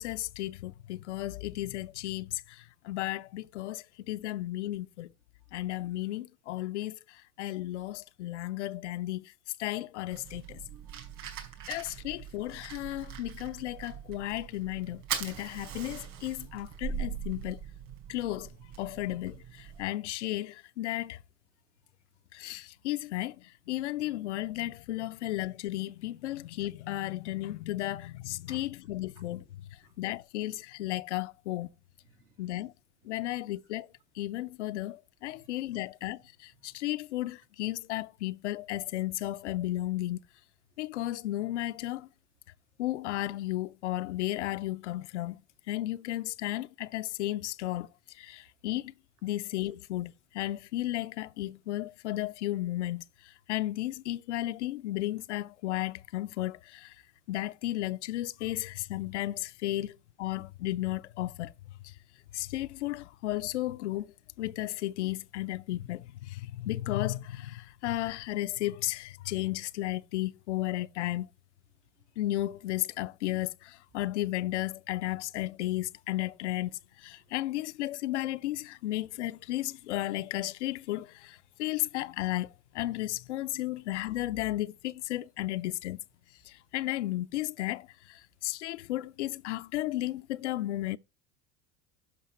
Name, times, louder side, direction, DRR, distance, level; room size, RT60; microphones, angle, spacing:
voice 1, 0.0-5.1 5.5-9.3 9.6-10.6 11.7-17.6 18.1-18.5 18.8-21.2 22.3-29.6 30.0-31.7 32.4-32.7 33.0-33.9 34.2-40.3 40.8-42.1 42.8-45.4 45.7-47.9 48.1-48.9 49.2-56.9 57.3-61.5 61.8-61.9 62.3-64.1 64.4-71.3 72.2-86.0 86.5-91.0, left 15 dB, 85° left, 0.5 m, -34 dB
Fire, 10.1-19.8, right 8 dB, 55° right, 4.4 m, -41 dB
voice 2, 10.7-11.8 28.5-28.6 29.8-29.9 32.1-32.3 35.3-35.5, right 7 dB, 75° right, 2.3 m, -61 dB
11.5 x 5.8 x 4.3 m
hypercardioid pair, 85°, 34 cm